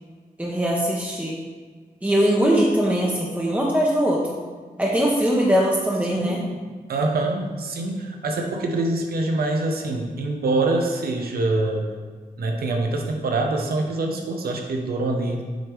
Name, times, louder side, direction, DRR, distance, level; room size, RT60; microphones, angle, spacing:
voice 1, 0.4-1.4 2.0-4.4 4.8-6.4, equal, 10° right, -3 dB, 0.9 m, -21 dB
voice 2, 6.1-6.4 6.9-11.9 12.4-15.4, right 2 dB, 90° right, 3 dB, 0.9 m, -25 dB
7.9 x 3.4 x 4.7 m, 1.5 s
cardioid pair, 80°, 15 cm